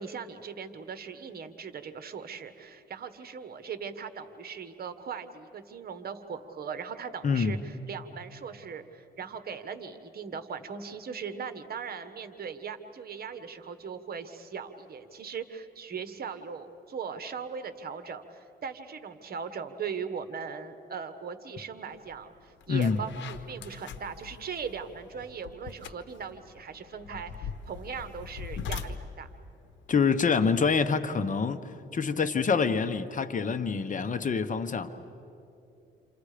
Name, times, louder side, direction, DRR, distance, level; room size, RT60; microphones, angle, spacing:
voice 1, 0.0-29.3, right 6 dB, 50° right, 1.5 m, -39 dB
voice 2, 7.2-7.5 22.7-23.0 29.9-34.9, left 5 dB, 40° left, 1.1 m, -26 dB
sound 1, 22.1-22.2 22.6-30.9, left 6 dB, 65° left, 1.3 m, -42 dB
29.0 x 27.5 x 5.1 m
cardioid pair, 90°, 20 cm